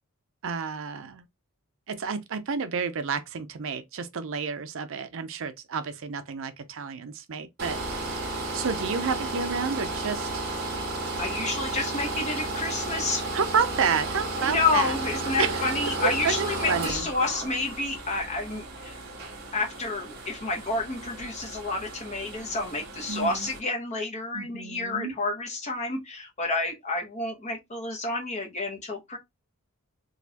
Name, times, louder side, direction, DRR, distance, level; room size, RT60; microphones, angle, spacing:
voice 1, 0.4-1.3 1.9-8.1 8.5-10.5 13.3-15.0 15.4-15.7 16.0-17.1 23.1-23.5 24.3-25.1, right 6 dB, 65° right, 0.5 m, -30 dB
sound 1, 7.6-23.6, right 2 dB, 50° right, 1.6 m, -33 dB
voice 2, 11.2-13.2 14.4-19.0 19.5-29.2, left 3 dB, 35° left, 1.0 m, -29 dB
4.0 x 2.5 x 2.8 m
head